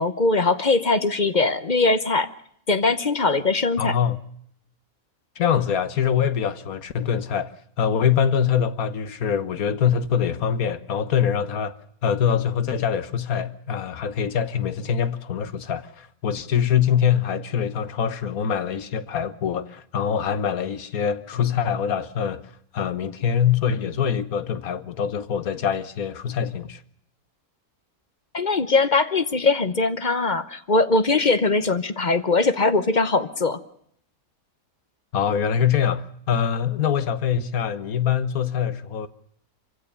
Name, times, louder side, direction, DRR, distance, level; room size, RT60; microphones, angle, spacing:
voice 1, 0.0-2.3 2.7-4.0 28.3-33.6, left 3 dB, 35° left, 1.0 m, -21 dB
voice 2, 3.8-4.2 5.4-7.5 7.8-22.4 22.7-26.8 35.1-39.1, left 8 dB, 75° left, 1.5 m, -24 dB
25.5 x 16.0 x 6.8 m
omnidirectional pair, 1.5 m